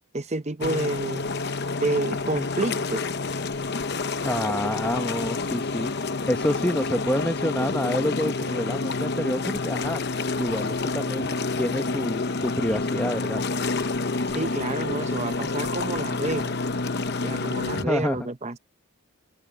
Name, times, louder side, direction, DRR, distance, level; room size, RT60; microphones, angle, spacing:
voice 1, 0.1-1.3 1.8-3.1 14.3-16.6 17.2-18.6, right 2 dB, 30° right, 0.8 m, -29 dB
sound 1, 0.6-17.8, left 3 dB, 50° left, 0.9 m, -28 dB
voice 2, 4.2-5.9 6.3-10.0 10.4-13.5 17.7-18.3, left 1 dB, 10° left, 0.8 m, -28 dB
head